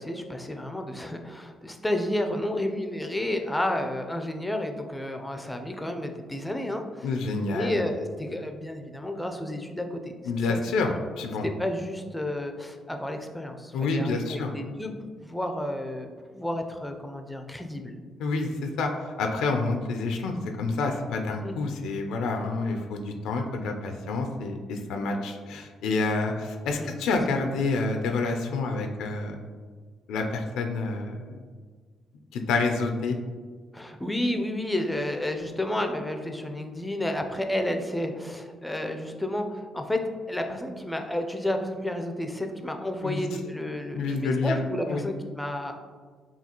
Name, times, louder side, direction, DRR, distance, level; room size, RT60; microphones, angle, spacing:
voice 1, 0.0-7.1 7.5-10.1 10.5-10.6 11.4-14.9 15.2-16.1 16.3-18.0 21.4-21.5 26.8-26.9 33.7-40.0 40.3-45.8, left 1 dB, 10° left, 5 dB, 0.4 m, -31 dB
voice 2, 7.0-7.8 10.2-11.4 13.7-14.5 18.2-29.4 30.1-31.4 32.3-33.1 43.0-43.2 43.9-44.6 44.9-45.0, left 3 dB, 85° left, 4 dB, 0.4 m, -28 dB
5.6 x 2.3 x 2.9 m, 1.6 s
cardioid pair, 90°, 0 cm